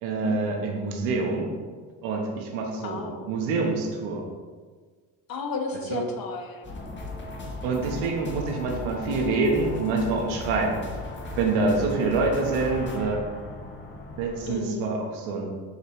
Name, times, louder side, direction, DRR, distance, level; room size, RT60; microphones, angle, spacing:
voice 1, 0.0-1.5 2.0-4.2 5.9-6.0 7.6-10.8 11.4-13.2 14.2-15.5, right 3 dB, 90° right, 1 dB, 1.2 m, -26 dB
voice 2, 2.8-3.3 5.3-6.7 14.5-14.9, left 4 dB, 50° left, 4 dB, 1.1 m, -34 dB
sound 1, 6.6-14.5, left 2 dB, 25° left, 1.3 m, -37 dB
6.7 x 5.4 x 3.1 m, 1.5 s
supercardioid pair, 80°, 46 cm